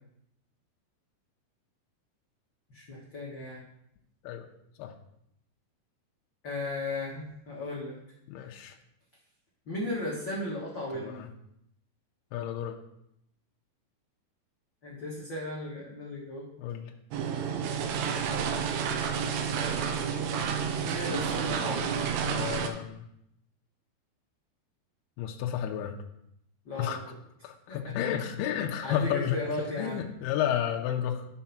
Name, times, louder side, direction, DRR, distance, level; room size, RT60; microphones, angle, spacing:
voice 1, 2.7-3.6 6.4-7.9 9.7-11.2 14.8-16.5 20.8-22.0 26.6-27.2 27.7-27.9 28.8-30.0, left 1 dB, 60° left, -5 dB, 1.2 m, -36 dB
voice 2, 8.3-8.8 10.9-11.3 12.3-12.8 16.6-16.9 22.2-23.0 25.2-26.0 26.8-27.0 27.4-29.4 29.8-31.3, left 10 dB, 80° left, 2 dB, 2.6 m, -31 dB
sound 1, 17.1-22.7, right 7 dB, 90° right, 3.0 m, -30 dB
11.0 x 4.6 x 5.9 m, 0.77 s
omnidirectional pair, 4.7 m